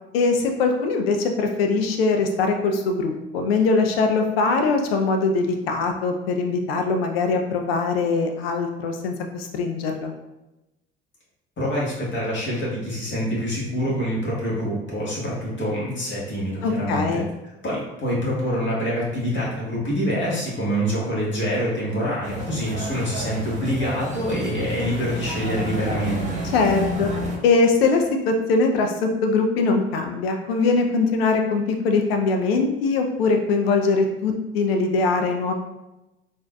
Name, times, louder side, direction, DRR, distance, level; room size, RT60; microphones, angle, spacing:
voice 1, 0.1-10.1 16.6-17.3 26.4-27.1 27.4-35.5, left 4 dB, 90° left, 4 dB, 0.5 m, -22 dB
voice 2, 11.6-17.2 17.6-26.4, equal, 40° left, -6 dB, 1.4 m, -26 dB
sound 1, 22.2-27.4, left 1 dB, 25° right, 1.1 m, -30 dB
3.7 x 2.5 x 2.2 m, 0.98 s
hypercardioid pair, 60°, 29 cm